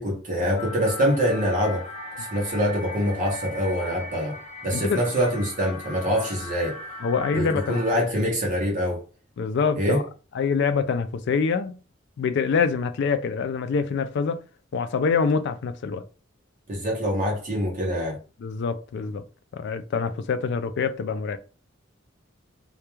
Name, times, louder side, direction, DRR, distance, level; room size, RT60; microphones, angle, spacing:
voice 1, 0.0-1.8 2.2-4.4 4.6-6.8 7.3-9.0 9.8-10.0 16.7-18.2, equal, 40° right, 0.7 m, -25 dB
sound 1, 0.6-7.9, left 2 dB, 40° left, 1.0 m, -38 dB
voice 2, 7.0-8.2 9.4-10.0 10.4-11.7 12.2-14.4 14.7-16.0 18.4-19.2 19.5-21.4, left 5 dB, 60° left, 0.3 m, -25 dB
2.2 x 2.2 x 2.9 m
head